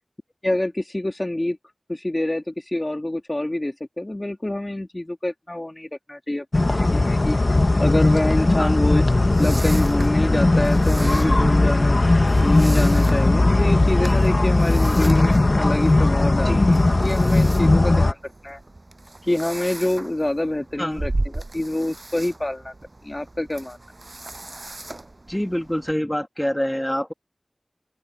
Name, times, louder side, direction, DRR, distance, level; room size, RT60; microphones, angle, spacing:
voice 1, 0.4-1.6 1.9-9.0 9.4-12.0 12.4-18.6 19.2-22.7 23.0-23.8, left 1 dB, 30° left, 2.2 m, -26 dB
sound 1, 6.5-18.1, left 2 dB, 50° left, 1.3 m, -18 dB
sound 2, 9.0-25.9, right 2 dB, 45° right, 7.1 m, -36 dB
voice 2, 25.3-27.1, equal, 10° left, 2.1 m, -26 dB
open air
wide cardioid pair, 50°, 0 cm